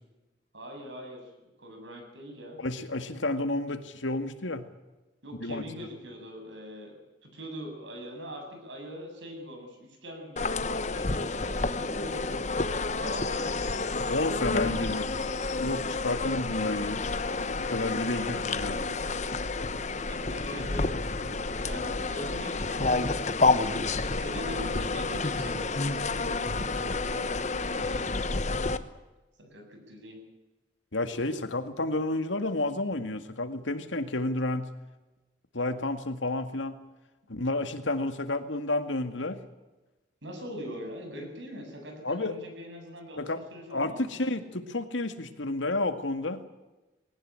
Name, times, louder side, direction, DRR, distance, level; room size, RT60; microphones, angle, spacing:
voice 1, 0.5-1.3 1.6-2.6 5.2-6.9 7.2-12.5 13.0-15.1 16.0-16.4 17.8-19.1 20.1-23.6 24.1-28.0 29.4-30.2 40.2-44.2, equal, 75° right, 3 dB, 7.9 m, -43 dB
voice 2, 2.6-4.7 5.4-5.6 14.1-15.1 15.6-17.0 17.6-19.0 20.3-20.4 30.9-34.7 35.5-36.8 37.3-39.4 42.0-42.3 43.2-43.4 43.7-46.4, left 2 dB, 90° left, 9 dB, 2.1 m, -31 dB
sound 1, 10.4-28.8, left 3 dB, 40° left, 1.1 m, -29 dB
20.5 x 18.5 x 9.0 m, 1.1 s
head